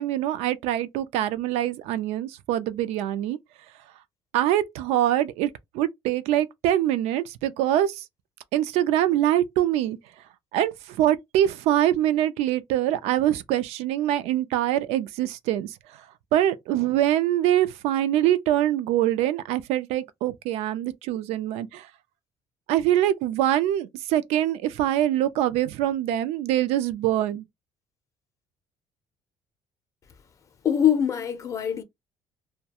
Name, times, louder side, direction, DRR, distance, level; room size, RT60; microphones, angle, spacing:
voice 1, 0.0-3.4 4.3-8.1 8.5-10.2 10.5-16.1 16.3-21.9 22.7-27.4, right 12 dB, 80° right, 0.4 m, -24 dB
voice 2, 30.6-31.8, left 9 dB, 30° left, 0.5 m, -23 dB
2.3 x 2.1 x 2.8 m
cardioid pair, 160°, 11 cm